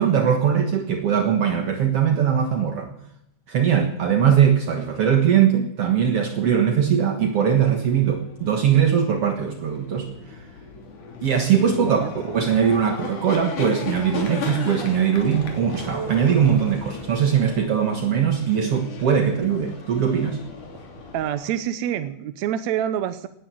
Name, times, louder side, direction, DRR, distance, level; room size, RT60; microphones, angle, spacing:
voice 1, 0.0-2.9 3.5-10.4 11.2-20.4, right 8 dB, 55° right, 5 dB, 2.2 m, -21 dB
sound 1, 7.9-21.5, left 4 dB, 85° left, 4.6 m, -36 dB
voice 2, 11.8-12.1 21.1-23.3, right 10 dB, 70° right, 11 dB, 2.0 m, -27 dB
18.5 x 10.0 x 7.7 m, 0.77 s
omnidirectional pair, 3.5 m